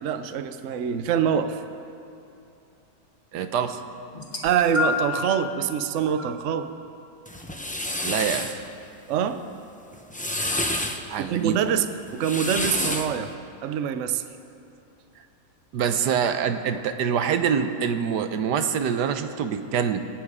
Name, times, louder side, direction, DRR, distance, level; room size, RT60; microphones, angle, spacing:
voice 1, 0.0-1.6 4.4-6.7 9.1-9.4 11.2-11.9 12.1-13.3 13.6-14.2, right 8 dB, 60° right, 10 dB, 0.9 m, -25 dB
voice 2, 3.3-3.8 8.0-8.6 10.5-10.7 11.1-11.6 15.7-20.0, right 7 dB, 80° right, 9 dB, 1.3 m, -25 dB
sound 1, 4.1-5.3 6.2-6.4 7.4-7.5, left 5 dB, 30° left, 1.9 m, -28 dB
sound 2, 7.3-8.6 9.9-11.0 12.1-13.2, left 1 dB, 10° left, 0.4 m, -28 dB
25.5 x 9.2 x 4.9 m, 2.7 s
omnidirectional pair, 1.8 m